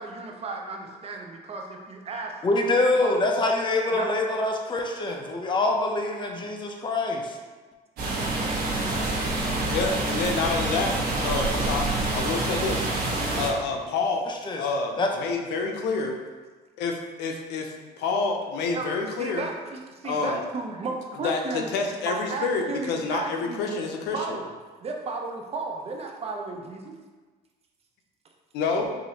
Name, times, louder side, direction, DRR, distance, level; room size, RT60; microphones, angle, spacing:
voice 1, 0.0-2.3 3.0-3.2 3.9-4.2 18.7-21.7 22.1-23.7 24.1-24.5 24.8-26.9, right 3 dB, 35° right, 2 dB, 0.6 m, -34 dB
voice 2, 2.4-7.4 14.3-14.6 15.0-15.1, left 2 dB, 30° left, 2 dB, 0.5 m, -25 dB
sound 1, 8.0-13.5, right 2 dB, 70° right, 1.2 m, -27 dB
voice 3, 9.7-11.0 11.2-12.9 13.4-14.3 14.6-16.2 16.8-19.4 20.0-20.4 21.2-24.4 28.5-28.9, left 4 dB, 85° left, 3 dB, 0.5 m, -28 dB
4.8 x 2.6 x 2.8 m, 1.4 s
cardioid pair, 110°, 17 cm